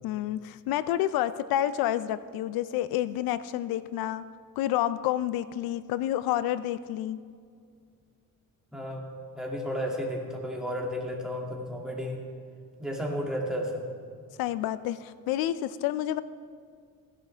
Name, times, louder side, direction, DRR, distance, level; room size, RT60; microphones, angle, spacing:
voice 1, 0.0-4.3 4.6-7.2 14.4-16.2, left 12 dB, 90° left, 15 dB, 0.5 m, -29 dB
voice 2, 8.7-9.0 9.3-12.2 12.8-13.8, equal, ahead, -2 dB, 2.3 m, -32 dB
16.0 x 10.5 x 3.4 m, 2.2 s
cardioid pair, 110°, 35 cm